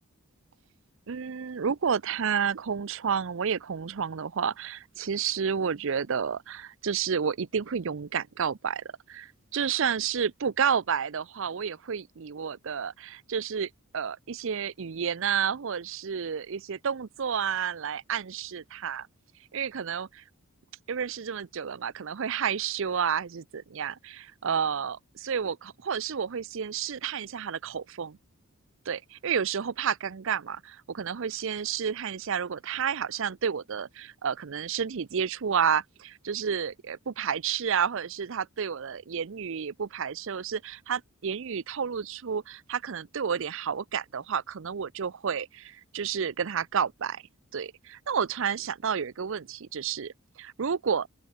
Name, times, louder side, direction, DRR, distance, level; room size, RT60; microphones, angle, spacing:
voice 1, 1.1-19.1 19.5-20.2 20.9-28.2 28.9-47.2 47.5-50.1 50.4-51.1, right 7 dB, 65° right, 0.6 m, -30 dB
open air
head